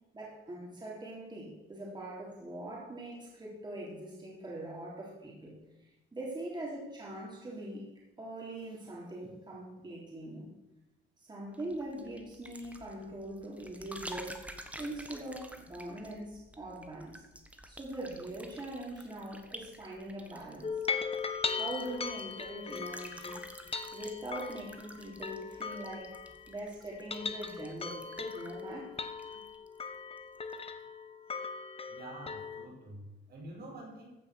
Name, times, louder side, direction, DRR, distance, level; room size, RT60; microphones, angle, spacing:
voice 1, 0.1-5.6 6.1-7.9 8.2-10.5 11.2-14.4 14.8-17.2 17.7-20.8 21.5-23.4 23.9-26.2 26.5-29.0, right 1 dB, 20° right, -4 dB, 3.5 m, -42 dB
sound 1, 11.5-29.9 30.2-30.6, right 1 dB, 5° right, 1.2 m, -51 dB
sound 2, 20.6-26.6 26.9-32.7, left 5 dB, 30° left, 1.0 m, -39 dB
voice 2, 31.9-34.1, right 1 dB, 55° right, -2 dB, 4.8 m, -47 dB
15.0 x 5.6 x 6.4 m, 0.98 s
cardioid pair, 90°, 20 cm